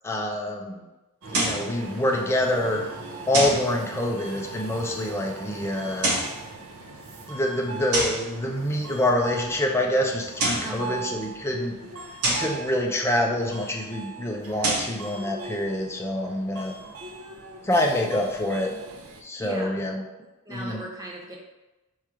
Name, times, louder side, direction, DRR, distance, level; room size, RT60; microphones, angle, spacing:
voice 1, 0.0-0.8 1.3-2.8 3.3-6.2 7.3-11.7 12.3-16.7 17.6-18.7 19.2-20.0 20.5-20.8, left 1 dB, 10° left, 0 dB, 0.5 m, -26 dB
Subway metro underground, 1.2-19.2, right 3 dB, 65° right, 0.6 m, -41 dB
sound 1, 1.3-1.7 3.3-3.7 5.9-6.4 7.9-8.3 10.2-10.8 12.2-12.6 14.4-15.0, right 1 dB, 90° right, 1.3 m, -26 dB
voice 2, 10.6-11.2 19.4-20.0 20.4-21.4, right 2 dB, 15° right, -3 dB, 0.8 m, -38 dB
3.6 x 3.0 x 4.8 m, 1.0 s
head